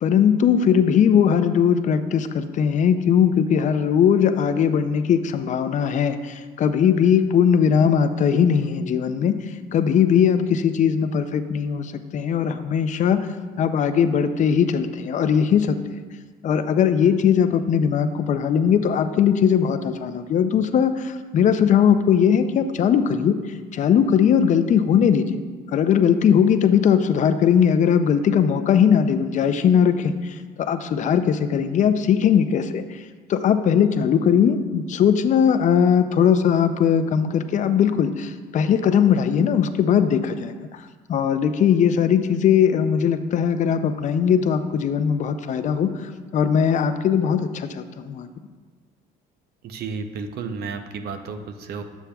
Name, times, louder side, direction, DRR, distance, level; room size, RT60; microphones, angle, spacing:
voice 1, 0.0-9.4 9.7-13.3 13.6-15.8 16.4-23.4 23.7-25.4 25.7-33.0 33.3-40.8 41.1-48.3, left 8 dB, 45° left, 10 dB, 0.4 m, -19 dB
voice 2, 49.6-51.8, right 5 dB, 70° right, 8 dB, 0.7 m, -32 dB
9.8 x 7.0 x 2.3 m, 1.4 s
cardioid pair, 110°, 17 cm